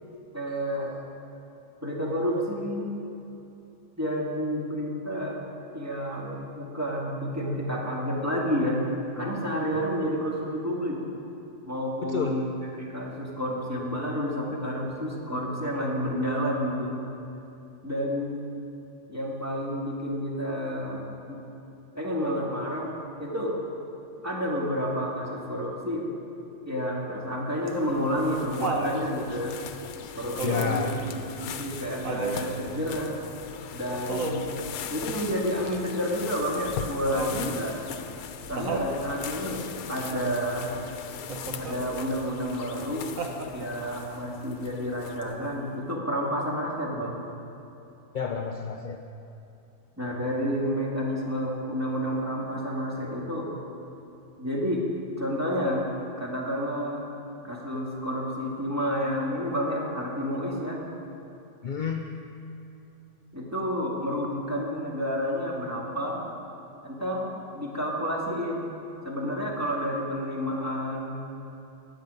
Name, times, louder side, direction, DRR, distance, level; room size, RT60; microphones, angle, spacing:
voice 1, 0.3-0.9 1.8-2.9 4.0-5.4 5.7-8.8 9.2-11.0 11.7-12.5 12.8-16.9 17.8-18.4 19.1-21.4 21.9-22.9 23.2-23.6 24.2-26.1 26.7-29.6 30.1-30.9 31.2-33.2 33.7-34.4 34.9-37.8 38.5-40.7 41.6-43.1 43.5-47.2 50.0-53.5 54.4-54.9 55.2-55.8 56.2-57.1 57.4-60.8 63.3-66.2 66.8-68.7 69.0-71.2, equal, 10° right, -4 dB, 1.8 m, -30 dB
voice 2, 12.0-12.4 30.4-31.0 48.1-49.0 61.6-62.2, left 6 dB, 60° left, 3 dB, 0.5 m, -30 dB
sound 1, 27.7-45.5, left 8 dB, 85° left, 1.1 m, -40 dB
Laughter, 27.7-29.0 30.4-30.9 32.0-32.5 34.1-34.6 37.1-37.6 38.6-38.9 41.3-41.8 43.2-43.8 45.2-45.3, right 3 dB, 65° right, 1.4 m, -32 dB
19.0 x 7.2 x 5.3 m, 2.8 s
omnidirectional pair, 1.5 m